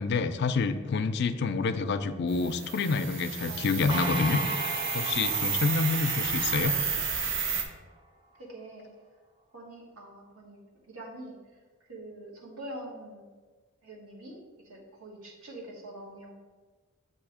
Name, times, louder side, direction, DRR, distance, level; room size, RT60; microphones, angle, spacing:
voice 1, 0.0-4.4 4.9-6.7, left 4 dB, 50° left, 9 dB, 0.3 m, -28 dB
sound 1, 2.3-7.6, right 6 dB, 60° right, 0.6 m, -31 dB
voice 2, 3.5-3.8 5.6-5.8 8.4-8.9 9.5-11.4 11.8-13.3 13.8-14.4 14.6-16.3, right 1 dB, 80° right, -2 dB, 1.3 m, -45 dB
sound 2, 3.9-7.6, right 2 dB, 20° right, 0.4 m, -36 dB
7.2 x 2.7 x 4.9 m, 1.4 s
head